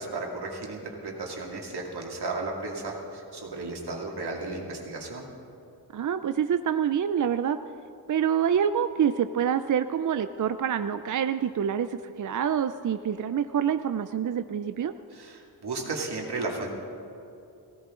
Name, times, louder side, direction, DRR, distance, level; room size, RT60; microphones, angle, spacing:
voice 1, 0.0-5.3 15.1-16.8, right 3 dB, 85° right, -1 dB, 2.4 m, -34 dB
voice 2, 5.9-7.6 8.1-14.9, right 8 dB, 55° right, 10 dB, 0.5 m, -26 dB
19.5 x 16.0 x 3.8 m, 2.7 s
wide cardioid pair, 120°, 38 cm